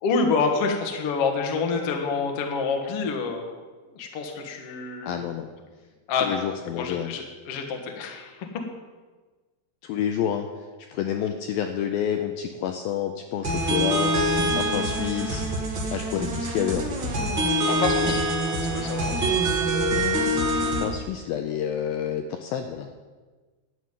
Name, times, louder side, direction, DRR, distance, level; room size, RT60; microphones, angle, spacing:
voice 1, 0.0-3.4 4.0-5.2 6.1-8.6 17.6-18.2 18.7-19.3, left 4 dB, 55° left, 2 dB, 1.7 m, -27 dB
voice 2, 5.0-5.5 6.2-7.1 9.8-14.1 14.6-15.5 15.9-16.8 20.8-22.9, left 9 dB, 80° left, 5 dB, 2.2 m, -29 dB
sound 1, 13.4-20.8, right 1 dB, 45° right, 1.5 m, -25 dB
11.5 x 7.0 x 9.5 m, 1.3 s
omnidirectional pair, 4.7 m